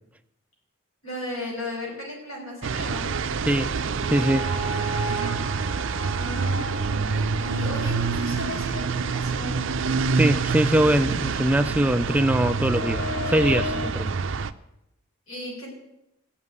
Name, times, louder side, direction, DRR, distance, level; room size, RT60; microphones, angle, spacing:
voice 1, 1.0-3.1 6.1-9.6 15.3-15.7, left 1 dB, 70° left, -2 dB, 5.7 m, -35 dB
sound 1, 2.6-14.5, right 4 dB, 60° right, 0.5 m, -27 dB
voice 2, 3.5-3.8 4.1-4.5 10.1-14.2, right 1 dB, 5° right, 10 dB, 0.4 m, -22 dB
sound 2, 3.9-9.1 9.5-9.7 12.5-13.9, equal, 55° left, 3.8 m, -34 dB
15.5 x 5.9 x 9.6 m, 0.86 s
head